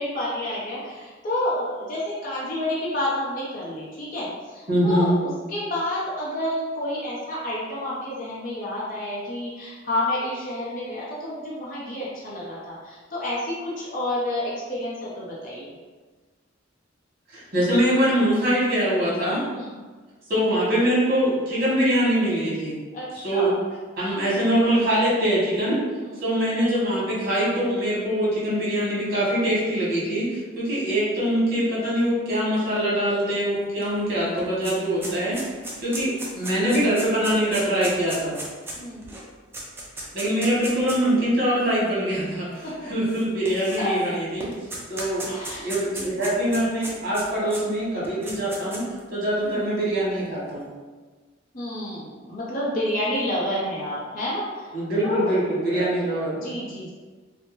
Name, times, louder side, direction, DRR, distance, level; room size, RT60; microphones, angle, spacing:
voice 1, 0.0-15.7 19.5-19.7 22.9-23.6 26.0-26.1 38.8-39.1 42.6-42.7 43.8-44.0 45.2-45.7 46.0-46.1 49.4-49.7 51.5-54.8 55.0-55.3 55.7-55.9 56.4-56.9, left 1 dB, 45° left, -7 dB, 0.7 m, -29 dB
voice 2, 4.7-5.1 17.3-19.4 20.3-22.8 23.2-23.5 24.0-25.8 26.2-35.5 35.8-38.4 40.1-44.5 44.9-48.8 49.1-50.7 54.7-56.5, equal, 50° right, -7 dB, 1.2 m, -23 dB
sound 1, 33.8-33.9 34.2-41.1 41.9-42.0 43.0-44.1 44.4-47.6 48.0-49.0, right 1 dB, 10° right, 0.4 m, -35 dB
2.6 x 2.1 x 3.0 m, 1.4 s
head